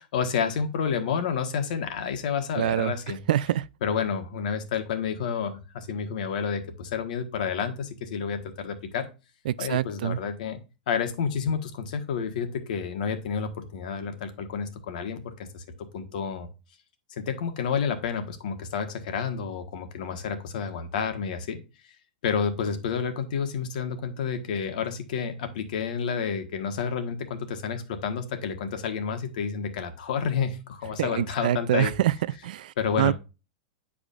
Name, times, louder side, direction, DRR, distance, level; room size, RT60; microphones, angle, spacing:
voice 1, 0.0-3.2 3.8-9.1 9.6-10.6 10.9-15.6 15.9-16.5 17.2-21.6 22.2-31.9 32.8-33.1, left 6 dB, 55° left, 1.3 m, -30 dB
voice 2, 2.6-2.9 3.3-3.7 9.5-10.2 31.0-32.1 32.4-33.1, right 12 dB, 60° right, 0.3 m, -25 dB
9.9 x 4.8 x 2.5 m
supercardioid pair, 180°, 5 cm